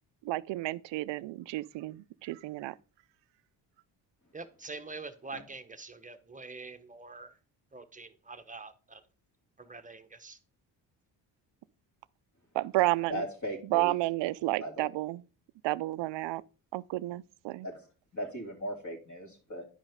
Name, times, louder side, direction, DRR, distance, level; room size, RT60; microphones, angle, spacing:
voice 1, 0.2-2.8 12.5-13.2 13.7-15.2 15.6-16.4 16.7-17.7, right 18 dB, 60° right, 0.5 m, -31 dB
voice 2, 4.3-7.3 7.7-9.0 9.6-10.4, right 3 dB, 15° right, 1.0 m, -45 dB
voice 3, 13.1-13.9 14.6-14.9 17.6-17.8 18.1-19.6, equal, 35° left, 2.8 m, -38 dB
10.0 x 5.1 x 3.6 m
supercardioid pair, 55°, 49 cm